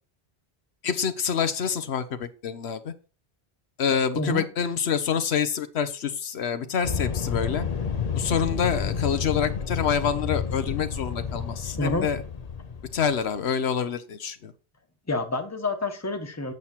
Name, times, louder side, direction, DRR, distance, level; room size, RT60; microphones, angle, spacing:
voice 1, 0.8-2.9 3.8-7.6 8.2-12.2 12.9-14.5, left 7 dB, 80° left, 11 dB, 1.1 m, -27 dB
voice 2, 4.1-4.5 11.8-12.1 15.1-16.5, left 2 dB, 15° left, 6 dB, 1.1 m, -28 dB
sound 1, 6.8-13.3, left 6 dB, 40° left, 0.8 m, -30 dB
8.1 x 7.1 x 4.4 m, 0.34 s
omnidirectional pair, 1.1 m